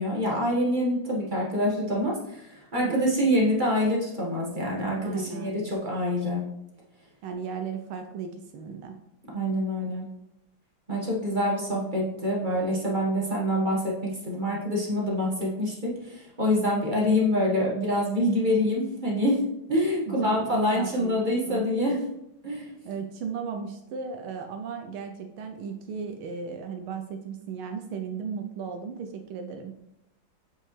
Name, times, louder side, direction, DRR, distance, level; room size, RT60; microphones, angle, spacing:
voice 1, 0.0-6.4 9.3-10.1 10.9-19.4 19.7-22.0 22.4-22.7, left 1 dB, 25° right, -4 dB, 1.3 m, -26 dB
voice 2, 5.0-5.7 7.2-9.0 20.1-21.2 21.5-22.0 22.8-29.7, right 6 dB, 80° right, 5 dB, 1.4 m, -36 dB
7.6 x 5.4 x 3.2 m, 0.82 s
omnidirectional pair, 2.4 m